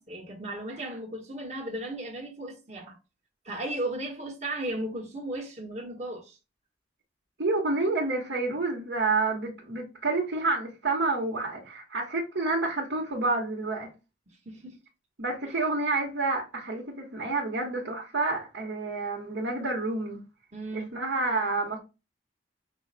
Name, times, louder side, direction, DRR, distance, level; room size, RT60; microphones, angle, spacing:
voice 1, 0.1-3.0 3.4-6.4 14.3-14.8 15.4-15.5 20.5-20.9, right 1 dB, 40° right, 1.2 m, -35 dB
voice 2, 7.4-13.9 15.2-20.2 20.7-21.8, right 3 dB, 75° right, 1.2 m, -29 dB
5.5 x 2.1 x 4.1 m
head